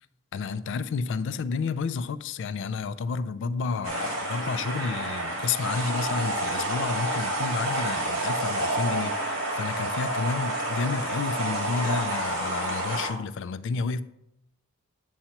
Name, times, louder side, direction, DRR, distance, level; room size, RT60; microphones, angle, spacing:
voice 1, 0.3-14.0, left 5 dB, 60° left, 0.3 m, -30 dB
sound 1, 3.8-13.1, right 1 dB, 75° right, 1.5 m, -29 dB
8.6 x 2.9 x 5.6 m
head